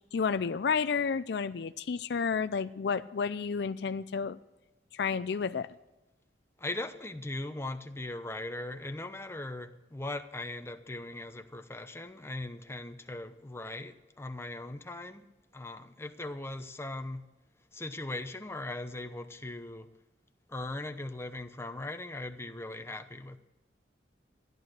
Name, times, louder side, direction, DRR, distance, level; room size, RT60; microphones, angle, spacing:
voice 1, 0.1-4.4 4.9-5.7, left 5 dB, 65° left, 0.4 m, -31 dB
voice 2, 6.6-15.3 15.5-17.2 17.7-19.9 20.5-23.4, left 2 dB, 15° left, 0.8 m, -39 dB
13.5 x 11.0 x 6.7 m
head